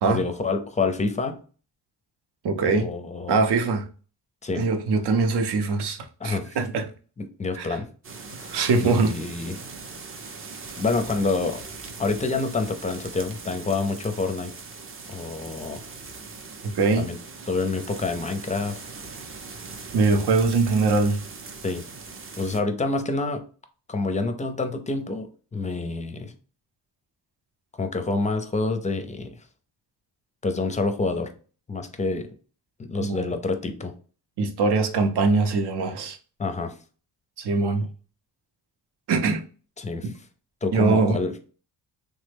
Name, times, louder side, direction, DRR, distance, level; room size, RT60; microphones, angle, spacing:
voice 1, 0.1-1.4 2.7-3.4 4.4-4.7 6.2-6.6 7.2-7.9 8.4-9.6 10.8-11.6 12.0-14.5 15.1-15.8 17.0-17.2 17.5-18.8 21.6-21.8 22.4-23.4 23.9-26.3 27.8-29.4 30.4-31.3 31.7-32.3 32.8-33.9 36.4-36.8 39.8-40.1 40.6-41.4, left 3 dB, 20° left, 0.4 m, -27 dB
voice 2, 2.4-2.9 3.3-3.8 4.6-6.0 6.2-6.8 7.6-7.8 8.5-9.1 16.6-17.1 19.9-21.2 33.0-33.3 34.4-36.2 37.4-37.9 39.1-39.4 40.0-40.1 40.7-41.2, right 4 dB, 75° right, 0.7 m, -22 dB
sound 1, 8.0-22.6, right 4 dB, 35° right, 0.5 m, -40 dB
3.3 x 2.1 x 3.3 m
cardioid pair, 100°, 40 cm